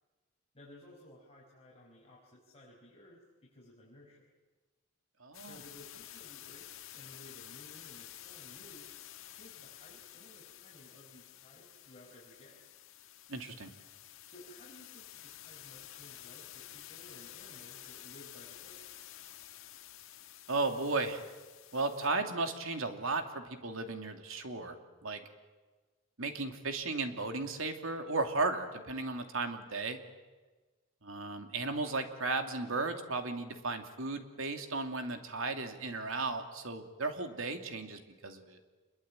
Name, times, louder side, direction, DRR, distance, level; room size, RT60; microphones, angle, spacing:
voice 1, 0.5-4.2 5.4-8.9 9.3-12.6 14.3-18.9, left 1 dB, 30° left, -4 dB, 5.5 m, -57 dB
voice 2, 5.2-5.6 13.3-13.7 20.5-21.3 21.7-25.2 26.2-30.0 31.0-38.6, right 3 dB, 80° right, 5 dB, 2.7 m, -35 dB
sound 1, 5.3-22.1, left 12 dB, 80° left, 1.5 m, -51 dB
27.5 x 22.0 x 9.0 m, 1.3 s
head